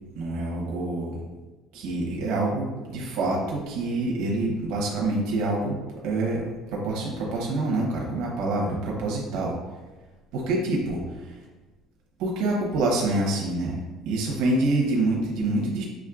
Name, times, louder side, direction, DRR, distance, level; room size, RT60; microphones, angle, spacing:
voice 1, 0.2-1.2 1.7-5.8 6.0-6.4 6.7-9.6 10.3-11.5 12.2-13.8 14.0-15.8, right 2 dB, 70° right, -2 dB, 1.0 m, -26 dB
6.2 x 3.1 x 2.4 m, 1.2 s
cardioid pair, 175°, 0 cm